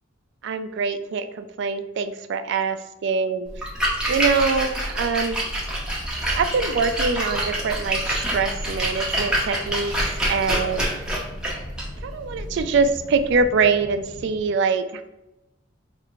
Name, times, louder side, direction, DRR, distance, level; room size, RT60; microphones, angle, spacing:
voice 1, 0.4-3.5 4.1-5.4 6.4-9.9 10.3-10.9 12.0-15.0, right 4 dB, 60° right, 9 dB, 0.3 m, -24 dB
Splash splatter, 3.5-13.4, right 1 dB, 5° right, 0.7 m, -27 dB
sound 1, 5.6-14.5, left 2 dB, 35° left, 0.3 m, -43 dB
4.4 x 2.4 x 3.0 m, 0.95 s
head